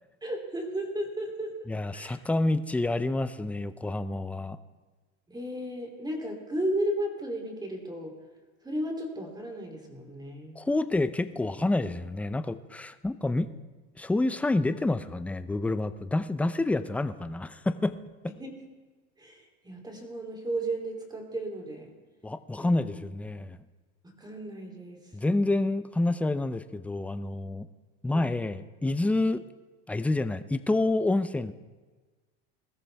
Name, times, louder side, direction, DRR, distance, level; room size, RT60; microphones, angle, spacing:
voice 1, 0.2-2.2 5.3-8.1 8.6-10.6 18.4-18.6 19.2-21.9 22.6-23.0 24.0-25.0 28.1-28.3, right 1 dB, 10° right, 2 dB, 3.0 m, -34 dB
voice 2, 1.7-4.6 10.6-13.5 14.0-18.0 18.2-18.3 22.2-23.6 25.1-27.7 28.0-29.4 29.9-31.5, left 2 dB, 5° left, 12 dB, 0.5 m, -28 dB
20.5 x 13.5 x 3.4 m, 1.3 s
supercardioid pair, 110°, 34 cm